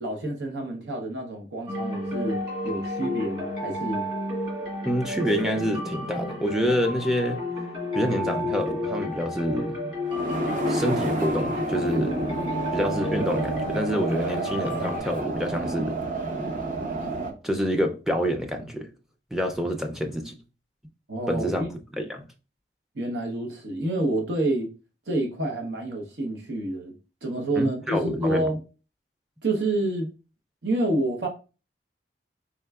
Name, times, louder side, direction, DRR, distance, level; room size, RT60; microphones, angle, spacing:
voice 1, 0.0-4.1 21.1-21.7 22.9-24.7 25.1-26.9 27.2-28.6 29.4-30.1 30.6-31.3, right 1 dB, 80° right, 0.8 m, -28 dB
sound 1, 1.7-15.0, left 2 dB, 30° right, 2.0 m, -31 dB
voice 2, 4.8-7.4 7.9-9.8 10.7-12.2 12.7-16.0 17.4-18.9 19.3-20.3 21.3-21.6 22.0-22.2 27.6-28.5, equal, 5° right, 0.4 m, -27 dB
sound 2, 10.1-17.3, right 3 dB, 45° right, 0.7 m, -30 dB
4.4 x 3.6 x 2.3 m
head